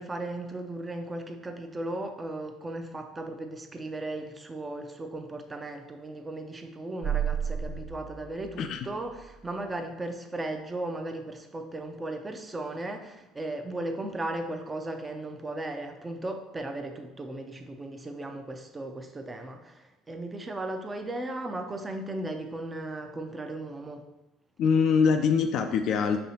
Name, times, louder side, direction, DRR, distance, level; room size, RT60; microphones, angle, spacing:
voice 1, 0.0-24.0, right 2 dB, 20° right, 5 dB, 0.6 m, -36 dB
sound 1, 7.0-9.4, right 8 dB, 65° right, 1.3 m, -33 dB
voice 2, 24.6-26.2, left 6 dB, 60° left, 5 dB, 0.3 m, -23 dB
5.5 x 3.0 x 2.8 m, 0.97 s
hypercardioid pair, 70°, 0 cm